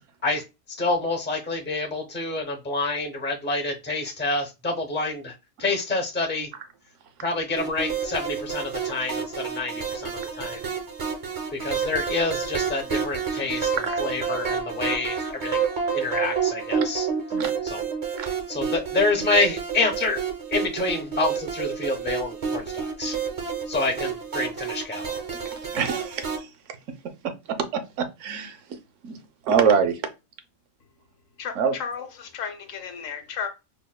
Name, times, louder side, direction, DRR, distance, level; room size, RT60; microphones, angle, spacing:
voice 1, 0.8-6.5 7.2-10.6 11.5-15.7 15.9-17.1 17.6-17.8 18.5-20.2 20.5-23.2 23.7-25.2, left 3 dB, 15° left, 0.3 m, -27 dB
sound 1, 7.5-26.4, right 6 dB, 45° right, 0.5 m, -29 dB
voice 2, 25.4-26.5 27.2-27.3 27.7-28.6 29.0-29.2 29.4-30.0 31.5-31.7, right 6 dB, 70° right, 0.9 m, -24 dB
voice 3, 31.8-33.5, left 7 dB, 75° left, 1.0 m, -33 dB
5.1 x 2.1 x 2.3 m
omnidirectional pair, 1.4 m